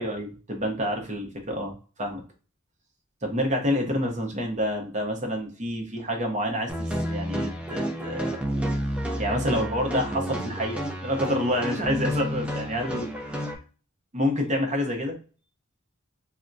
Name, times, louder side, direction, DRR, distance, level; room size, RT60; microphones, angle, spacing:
voice 1, 0.0-2.2 3.2-8.4 9.2-13.1 14.1-15.2, equal, 35° right, 2 dB, 0.7 m, -28 dB
sound 1, 6.7-13.5, equal, 5° right, 0.4 m, -30 dB
3.3 x 2.1 x 2.6 m, 0.37 s
head